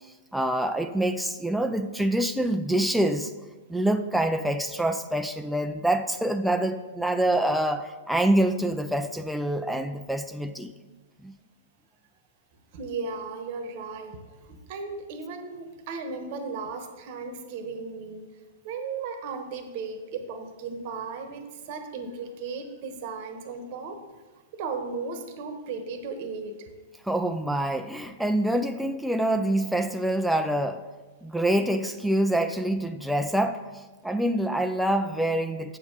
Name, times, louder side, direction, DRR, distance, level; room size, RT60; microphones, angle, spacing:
voice 1, 0.3-3.3 3.7-10.7 11.2-11.3 27.0-30.8 31.2-35.8, right 1 dB, ahead, 7 dB, 0.4 m, -26 dB
voice 2, 12.7-14.2 14.5-18.3 18.6-24.1 24.5-26.7, right 4 dB, 50° right, 7 dB, 1.0 m, -36 dB
8.0 x 7.0 x 3.8 m, 1.2 s
figure-of-eight pair, 105°, 0 cm